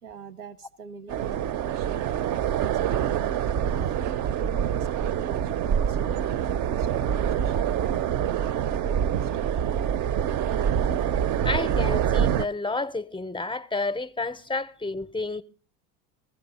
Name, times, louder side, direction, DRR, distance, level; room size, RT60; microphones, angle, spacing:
voice 1, 0.0-4.0 4.3-8.4 8.8-9.8, right 5 dB, 85° right, 1.0 m, -44 dB
sound 1, 1.1-12.5, right 9 dB, 40° right, 0.5 m, -25 dB
voice 2, 11.4-15.4, left 3 dB, 10° left, 0.5 m, -30 dB
15.5 x 13.5 x 4.1 m
hypercardioid pair, 80°, 44 cm